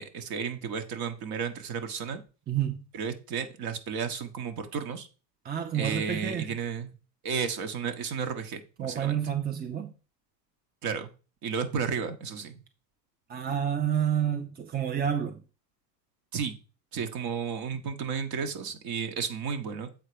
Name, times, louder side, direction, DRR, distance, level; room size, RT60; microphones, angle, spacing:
voice 1, 0.0-2.2 2.9-5.1 5.7-6.9 7.2-9.2 10.8-11.1 11.4-12.6 16.3-16.6 16.9-19.9, right 6 dB, 45° right, 1.6 m, -33 dB
voice 2, 2.5-2.8 5.4-6.5 8.8-9.9 13.3-15.4, right 9 dB, 20° right, 0.7 m, -29 dB
7.9 x 4.2 x 5.1 m
hypercardioid pair, 95°, 49 cm